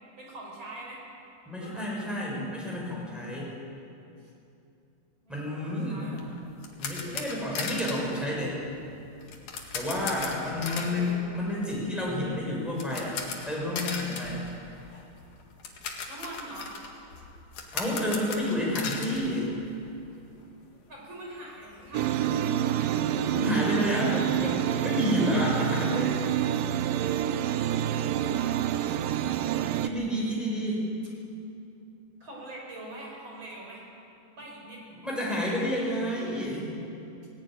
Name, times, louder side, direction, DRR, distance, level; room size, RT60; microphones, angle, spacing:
voice 1, 0.2-1.0 1.5-1.9 4.2-4.3 5.2-6.4 10.2-11.2 16.1-16.7 20.9-23.1 23.6-24.2 27.5-29.1 32.2-33.8 34.3-34.8, right 2 dB, 30° right, -2 dB, 5.4 m, -44 dB
voice 2, 1.5-3.5 5.3-6.0 6.8-8.6 9.7-13.2 13.4-14.5 17.7-19.5 23.3-26.2 29.8-30.9 34.9-36.7, left 1 dB, ahead, -5 dB, 6.1 m, -30 dB
sound 1, 6.2-20.1 20.4-20.5 20.9-21.0 21.3-22.8, left 5 dB, 60° left, 3.4 m, -38 dB
sound 2, 21.9-29.9, right 11 dB, 80° right, 2.3 m, -27 dB
19.0 x 17.5 x 9.3 m, 2.7 s
omnidirectional pair, 4.4 m